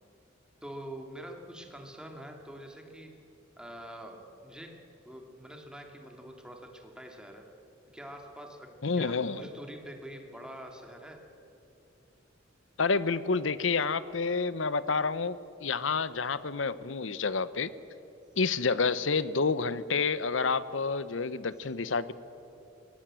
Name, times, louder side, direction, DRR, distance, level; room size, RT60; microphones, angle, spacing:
voice 1, 0.6-3.1 3.6-7.5 7.9-11.2, right 1 dB, 5° right, 3 dB, 2.5 m, -45 dB
voice 2, 8.8-9.4 12.8-17.7 18.4-22.1, left 4 dB, 85° left, 16 dB, 0.9 m, -29 dB
22.5 x 18.5 x 7.6 m, 3.0 s
head